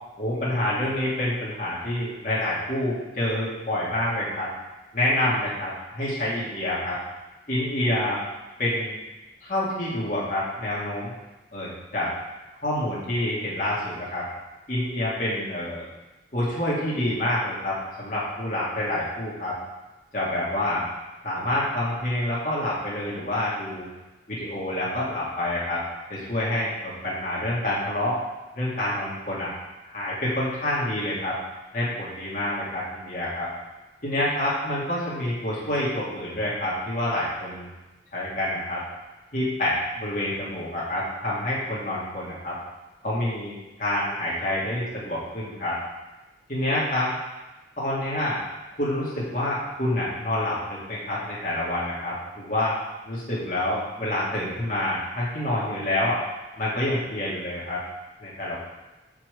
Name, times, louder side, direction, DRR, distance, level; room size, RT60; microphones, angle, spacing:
voice 1, 0.2-4.5 4.9-7.0 7.5-8.2 8.6-9.0 9.4-11.1 11.5-12.1 12.6-14.3 14.7-15.8 16.3-19.6 20.1-20.8 21.2-23.9 24.3-25.8 26.1-28.2 28.5-29.5 29.8-31.4 31.7-33.5 34.0-37.7 38.1-38.8 39.3-42.6 43.0-45.8 46.5-47.1 47.8-48.4 48.8-52.7 53.0-56.2 56.6-57.8 58.2-58.6, left 1 dB, 45° left, -7 dB, 2.3 m, -27 dB
6.1 x 5.7 x 6.9 m, 1.1 s
head